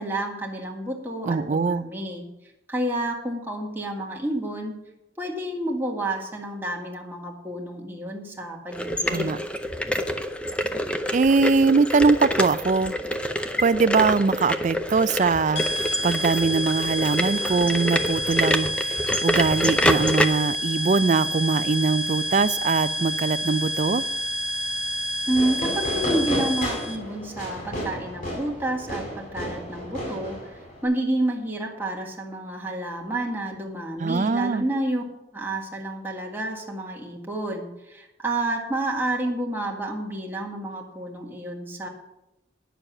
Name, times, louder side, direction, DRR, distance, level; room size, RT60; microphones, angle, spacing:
voice 1, 0.0-2.3 2.7-4.8 5.2-9.4 25.3-35.0 35.3-41.9, right 1 dB, 10° right, -1 dB, 1.7 m, -29 dB
voice 2, 1.2-1.8 9.1-9.4 11.1-12.9 13.6-24.0 34.0-34.6, right 4 dB, 40° right, 15 dB, 0.4 m, -22 dB
sound 1, 8.7-20.3, equal, 5° left, 0.6 m, -27 dB
sound 2, 15.6-27.0, equal, 65° left, 1.7 m, -29 dB
Fireworks, 25.3-30.8, equal, 50° left, 5.0 m, -32 dB
10.0 x 6.8 x 7.1 m, 0.91 s
head